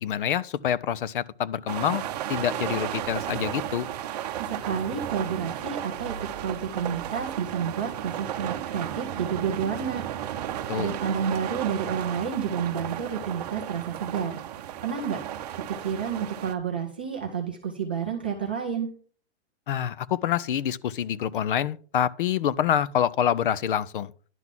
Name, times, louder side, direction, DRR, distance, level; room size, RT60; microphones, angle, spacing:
voice 1, 0.0-2.0 2.3-3.9 10.7-10.9 19.7-24.1, left 9 dB, 55° left, 0.5 m, -26 dB
sound 1, 1.7-16.5, right 11 dB, 40° right, 0.7 m, -34 dB
voice 2, 4.3-6.1 6.4-10.0 10.7-14.4 14.8-15.2 15.8-18.9, right 7 dB, 10° right, 0.3 m, -30 dB
11.0 x 4.0 x 7.3 m
hypercardioid pair, 170°, 33 cm